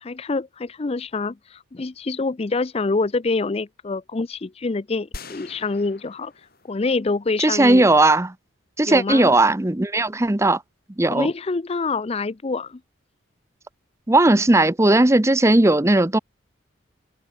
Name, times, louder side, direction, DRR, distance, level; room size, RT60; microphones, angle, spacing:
voice 1, 0.0-6.3 6.6-7.9 8.9-9.3 11.1-12.8, left 3 dB, 30° left, 0.5 m, -26 dB
sound 1, 5.1-7.4, left 3 dB, 50° left, 7.9 m, -43 dB
voice 2, 7.4-8.3 8.8-10.6 11.0-11.3 14.1-16.2, right 2 dB, 15° right, 0.7 m, -17 dB
head